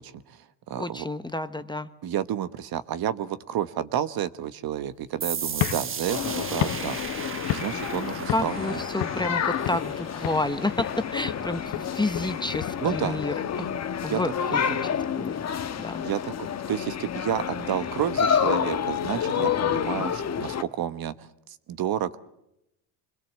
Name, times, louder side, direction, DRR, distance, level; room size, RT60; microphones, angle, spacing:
voice 1, 0.0-1.1 2.0-7.0 7.5-8.8 12.8-13.2 14.1-14.2 14.5-14.8 16.0-21.3 21.7-22.2, right 10 dB, 50° right, 13 dB, 1.2 m, -30 dB
voice 2, 0.8-1.9 8.3-13.7 14.0-14.8 15.2-15.4 15.8-16.1, left 2 dB, 10° left, 10 dB, 0.9 m, -30 dB
sound 1, 5.2-12.6, right 6 dB, 25° right, 1.1 m, -37 dB
sound 2, 5.5-8.0 8.3-8.6 9.0-9.9 10.2-10.5 10.8-13.9, left 14 dB, 55° left, 1.0 m, -33 dB
sound 3, 6.1-20.6, left 8 dB, 35° left, 1.2 m, -29 dB
25.5 x 21.5 x 7.5 m, 0.84 s
supercardioid pair, 100°, 47 cm